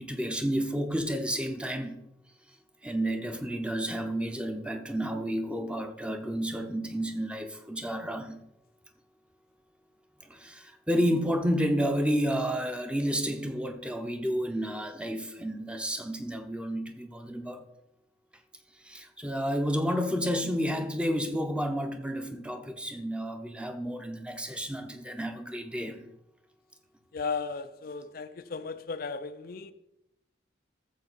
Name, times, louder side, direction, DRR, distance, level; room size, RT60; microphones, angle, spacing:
voice 1, 0.0-2.0 2.8-8.4 10.2-17.6 18.8-26.1, equal, 5° right, 0.8 m, -31 dB
voice 2, 27.1-29.7, left 5 dB, 50° left, 0.5 m, -35 dB
14.0 x 7.2 x 4.1 m
head